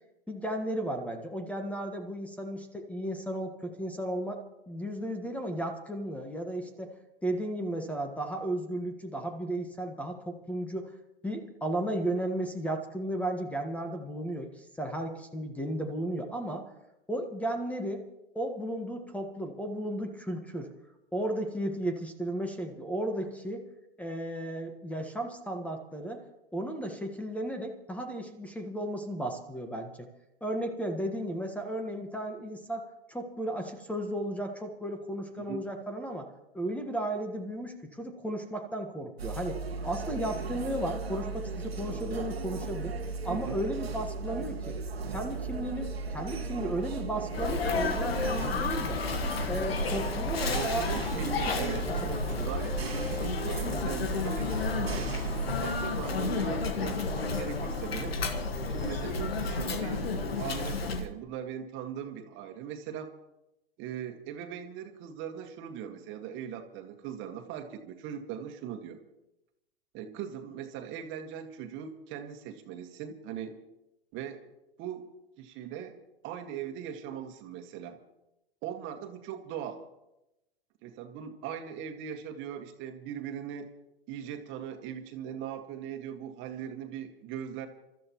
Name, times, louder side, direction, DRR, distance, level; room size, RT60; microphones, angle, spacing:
voice 1, 0.3-4.4 4.7-6.9 7.2-10.9 11.2-16.6 17.1-18.0 18.3-20.7 21.1-23.6 24.0-26.2 26.5-30.1 30.4-36.3 36.5-42.9 43.2-44.8 45.1-49.0 49.4-50.8 51.1-52.5, right 1 dB, 5° left, 5 dB, 1.4 m, -34 dB
sound 1, 39.2-55.6, right 4 dB, 85° right, 1.6 m, -37 dB
Sneeze, 47.3-61.1, left 3 dB, 80° left, 1.7 m, -31 dB
voice 2, 50.6-55.1 55.6-58.1 58.7-60.1 60.4-63.1 63.8-69.0 69.9-73.6 74.1-74.4 74.8-75.1 75.4-78.0 78.6-79.8 80.8-83.7 84.1-87.7, right 8 dB, 40° right, 6 dB, 1.7 m, -40 dB
28.0 x 13.5 x 3.1 m, 0.92 s
hypercardioid pair, 100°, 30 cm